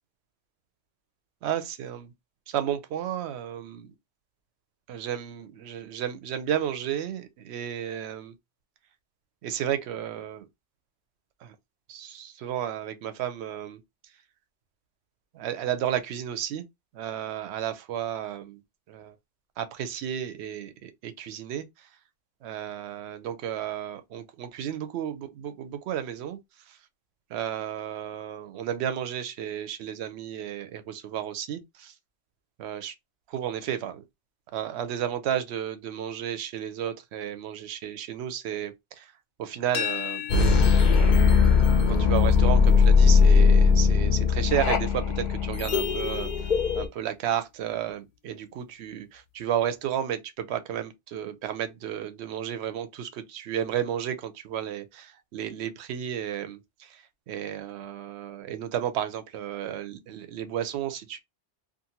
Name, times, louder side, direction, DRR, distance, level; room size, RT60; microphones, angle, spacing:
voice 1, 1.4-2.1 2.5-3.9 4.9-8.3 9.4-10.5 11.4-11.5 11.9-13.8 15.3-16.7 16.9-18.6 18.9-19.1 19.6-21.9 22.4-26.4 26.7-26.8 27.3-31.9 32.6-32.9 33.3-34.0 34.5-39.1 39.4-40.2 41.0-41.6 41.9-46.3 46.8-61.2, right 10 dB, 70° right, 0.8 m, -33 dB
sound 1, 39.7-45.5, left 10 dB, 80° left, 0.9 m, -39 dB
sound 2, 40.3-46.9, left 5 dB, 55° left, 0.5 m, -19 dB
2.6 x 2.4 x 2.7 m
omnidirectional pair, 1.2 m